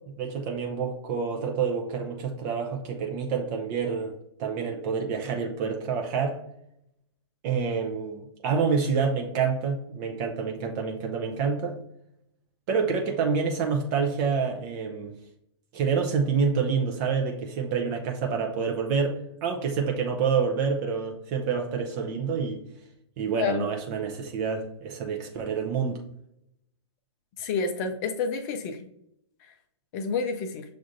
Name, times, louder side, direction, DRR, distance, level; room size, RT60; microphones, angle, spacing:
voice 1, 0.2-4.1 4.4-6.4 7.4-11.8 12.7-15.1 15.7-22.6 23.2-26.0, right 5 dB, 35° right, 1 dB, 0.6 m, -27 dB
voice 2, 23.3-23.6 27.4-28.8 29.9-30.6, left 5 dB, 35° left, 6 dB, 0.4 m, -29 dB
6.6 x 2.4 x 2.6 m, 0.76 s
hypercardioid pair, 125°, 15 cm